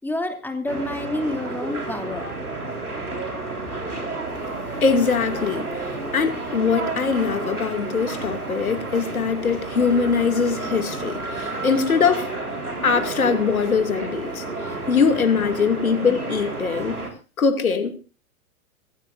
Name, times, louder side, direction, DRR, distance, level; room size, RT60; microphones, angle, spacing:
voice 1, 0.0-2.3 3.8-4.0, left 1 dB, 5° left, 2.7 m, -29 dB
sound 1, 0.7-17.1, right 2 dB, 85° right, 4.1 m, -31 dB
voice 2, 4.8-12.3 12.8-17.1 17.4-18.0, left 5 dB, 70° left, 2.6 m, -22 dB
24.0 x 16.0 x 2.6 m
figure-of-eight pair, 100°, 44 cm